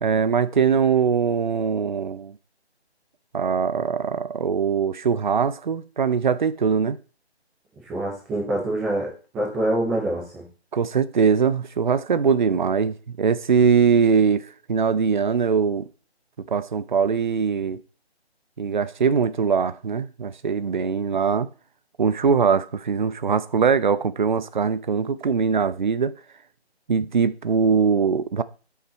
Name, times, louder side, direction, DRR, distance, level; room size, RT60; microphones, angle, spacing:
voice 1, 0.0-2.4 3.3-7.0 10.7-15.8 16.5-17.8 18.6-21.5 22.0-26.2 26.9-28.4, right 6 dB, 45° right, 0.7 m, -22 dB
voice 2, 7.8-10.4, right 1 dB, 5° right, 0.9 m, -26 dB
14.0 x 5.9 x 4.3 m
figure-of-eight pair, 160°, 33 cm